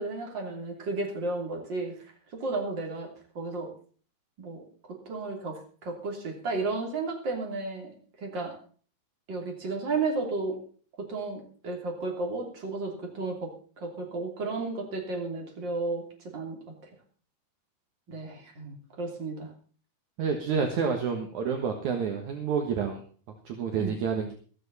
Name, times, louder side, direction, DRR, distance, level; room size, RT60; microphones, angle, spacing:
voice 1, 0.0-1.9 2.3-3.1 3.4-3.7 4.4-8.6 9.3-10.6 11.0-13.5 13.8-16.6 18.1-19.5 23.7-23.9, right 3 dB, 35° right, 0 dB, 3.7 m, -33 dB
voice 2, 20.2-23.0 23.5-24.3, right 6 dB, 60° right, 4 dB, 2.7 m, -29 dB
15.0 x 14.0 x 4.2 m, 0.42 s
omnidirectional pair, 4.0 m